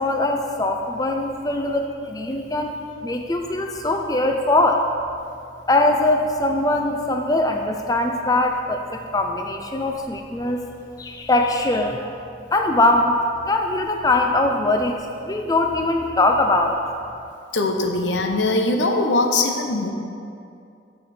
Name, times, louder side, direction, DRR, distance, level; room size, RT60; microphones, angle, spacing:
voice 1, 0.0-2.8 3.0-4.8 5.7-10.6 11.0-12.2 12.5-13.2 13.5-15.0 15.2-16.8, left 2 dB, 20° left, 3 dB, 0.5 m, -21 dB
voice 2, 17.5-19.9, left 2 dB, 80° left, 4 dB, 0.9 m, -21 dB
11.0 x 6.8 x 4.3 m, 2.5 s
head